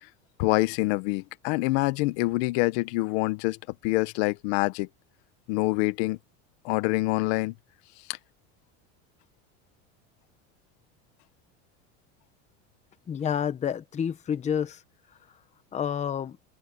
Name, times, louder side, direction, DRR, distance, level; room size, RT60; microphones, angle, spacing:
voice 1, 0.4-3.6 3.8-4.9 5.5-6.2 6.6-7.5, left 22 dB, 70° left, 1.1 m, -26 dB
voice 2, 13.1-14.8 15.7-16.4, left 8 dB, 20° left, 0.9 m, -29 dB
open air
cardioid pair, 150°, 34 cm